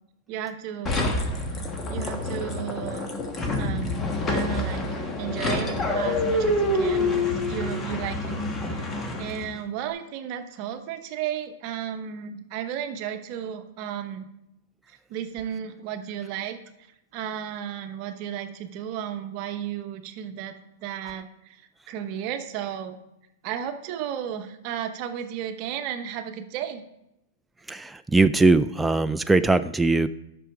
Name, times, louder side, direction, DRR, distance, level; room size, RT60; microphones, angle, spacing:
voice 1, 0.3-1.0 1.9-3.1 3.6-4.9 5.2-8.4 8.7-14.3 14.9-16.6 17.1-20.6 20.8-21.6 21.9-23.0 23.4-26.8, right 9 dB, 45° right, 8 dB, 0.9 m, -34 dB
sound 1, 0.9-9.6, left 2 dB, 20° left, 1.3 m, -27 dB
voice 2, 27.7-30.1, right 3 dB, 5° right, 10 dB, 0.3 m, -20 dB
9.9 x 6.2 x 4.7 m, 0.85 s
hypercardioid pair, 125°, 0 cm